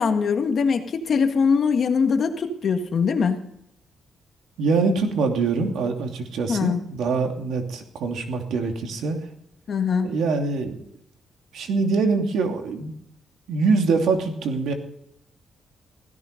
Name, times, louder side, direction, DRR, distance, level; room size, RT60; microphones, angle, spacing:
voice 1, 0.0-3.4 6.5-6.8 9.7-10.1, left 5 dB, 50° left, 6 dB, 1.7 m, -22 dB
voice 2, 4.6-9.3 10.0-10.8 11.5-12.9 13.5-14.7, right 4 dB, 90° right, 4 dB, 2.7 m, -24 dB
16.5 x 14.5 x 5.3 m, 0.75 s
wide cardioid pair, 160°, 0 cm